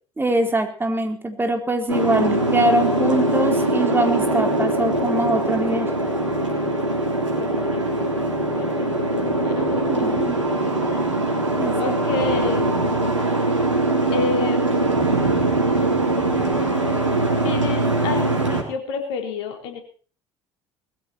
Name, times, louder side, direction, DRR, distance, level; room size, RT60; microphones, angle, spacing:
voice 1, 0.2-5.9 9.9-10.4 11.6-12.0, right 1 dB, 15° right, 5 dB, 4.0 m, -23 dB
Boat Water vehicle, 1.9-18.6, right 2 dB, 85° right, 3.7 m, -22 dB
voice 2, 7.4-8.0 8.5-9.9 10.9-11.0 11.8-12.7 14.1-14.9 17.4-19.8, left 6 dB, 65° left, 5 dB, 4.1 m, -30 dB
21.0 x 14.5 x 4.4 m, 0.40 s
figure-of-eight pair, 60°, 15 cm